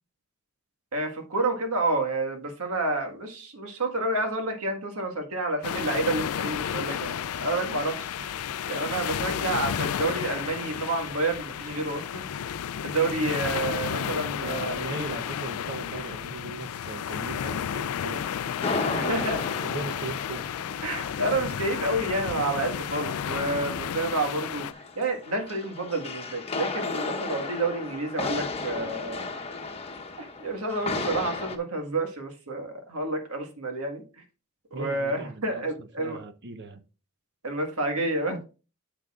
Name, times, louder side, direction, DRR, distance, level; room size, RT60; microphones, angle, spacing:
voice 1, 0.9-12.2 12.8-15.1 18.6-19.4 20.8-29.3 30.2-34.0 34.7-36.2 37.4-38.4, right 2 dB, 85° right, 1.7 m, -29 dB
sound 1, 5.6-24.7, left 8 dB, 85° left, 0.4 m, -32 dB
voice 2, 13.9-18.2 18.9-20.4 34.7-36.8, right 2 dB, 55° right, 0.8 m, -38 dB
sound 2, 18.1-23.5 23.8-31.6, left 3 dB, 30° left, 1.0 m, -35 dB
9.9 x 6.8 x 2.4 m
head